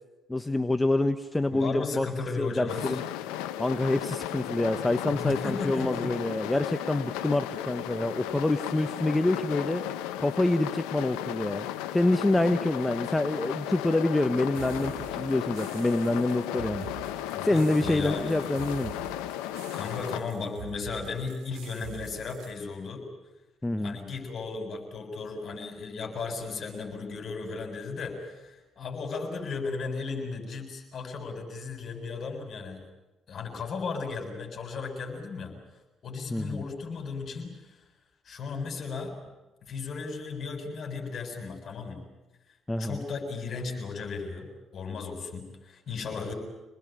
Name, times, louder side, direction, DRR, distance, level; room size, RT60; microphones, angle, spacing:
voice 1, 0.3-2.1 2.4-3.0 3.6-9.8 10.2-11.7 11.9-16.8 17.4-18.9 23.6-24.0 36.3-36.6 42.7-43.0, left 2 dB, 15° left, 9 dB, 1.3 m, -26 dB
voice 2, 1.5-3.0 5.1-6.1 6.6-6.8 17.3-18.4 19.7-23.1 23.8-32.8 33.3-35.5 36.0-37.8 38.3-39.2 39.6-42.0 42.8-46.3, left 4 dB, 55° left, 4 dB, 7.3 m, -35 dB
sound 1, 2.7-20.2, left 12 dB, 80° left, 1.1 m, -35 dB
sound 2, 14.5-22.5, right 12 dB, 70° right, 5.3 m, -46 dB
27.0 x 20.5 x 9.1 m, 1.1 s
hypercardioid pair, 55°, 0 cm